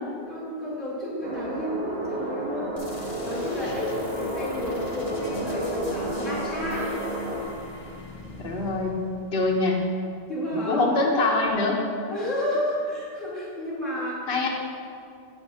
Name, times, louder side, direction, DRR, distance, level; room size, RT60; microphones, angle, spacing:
voice 1, 0.0-6.9 10.3-10.8 12.1-14.3, equal, ahead, -8 dB, 1.6 m, -31 dB
sound 1, 1.2-7.4, equal, 85° right, 1.3 m, -31 dB
sound 2, 2.8-10.3, left 1 dB, 35° left, 0.8 m, -43 dB
voice 2, 8.4-9.0 9.3-9.8 10.5-11.8 14.3-14.5, left 3 dB, 70° left, -1 dB, 1.1 m, -24 dB
7.8 x 3.5 x 5.5 m, 2.3 s
omnidirectional pair, 1.1 m